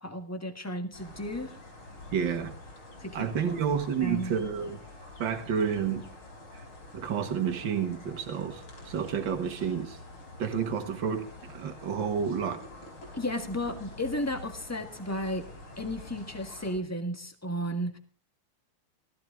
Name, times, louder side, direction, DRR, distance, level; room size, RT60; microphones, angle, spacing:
voice 1, 0.0-1.6 3.0-3.6 4.0-4.3 13.2-15.5 15.8-18.0, equal, 10° left, 6 dB, 1.4 m, -34 dB
sound 1, 0.9-16.8, left 2 dB, 85° left, 5.1 m, -47 dB
voice 2, 2.1-2.5 3.1-4.8 5.2-6.1 6.5-6.6 6.9-10.0 10.4-12.6, right 7 dB, 60° right, 6 dB, 2.3 m, -30 dB
15.5 x 15.5 x 3.8 m, 0.38 s
omnidirectional pair, 2.3 m